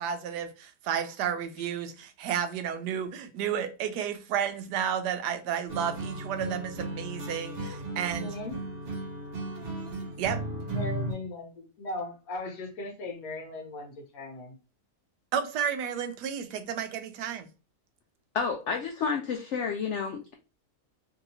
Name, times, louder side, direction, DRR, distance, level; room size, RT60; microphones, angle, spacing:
voice 1, 0.0-8.3 10.2-10.4 15.3-17.5, right 8 dB, 80° right, 1.1 m, -32 dB
sound 1, 5.7-11.1, right 1 dB, 50° right, 0.8 m, -35 dB
voice 2, 7.9-8.6 10.7-14.5, left 2 dB, 65° left, 1.2 m, -38 dB
voice 3, 18.3-20.3, left 5 dB, 85° left, 0.6 m, -30 dB
3.1 x 2.7 x 2.6 m
omnidirectional pair, 1.8 m